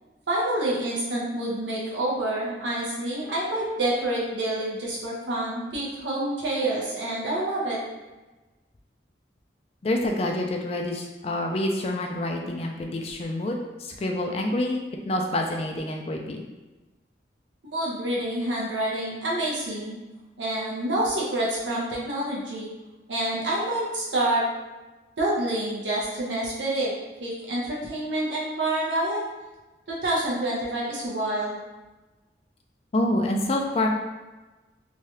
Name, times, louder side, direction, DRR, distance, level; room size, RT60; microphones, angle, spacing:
voice 1, 0.3-7.8 17.6-20.0 20.4-22.7 23.1-24.5 25.2-26.9 27.2-29.2 29.9-31.6, right 1 dB, 85° right, -5 dB, 0.7 m, -27 dB
voice 2, 9.8-16.4 32.9-33.9, left 1 dB, 35° left, 2 dB, 0.3 m, -27 dB
3.1 x 2.3 x 2.8 m, 1.2 s
head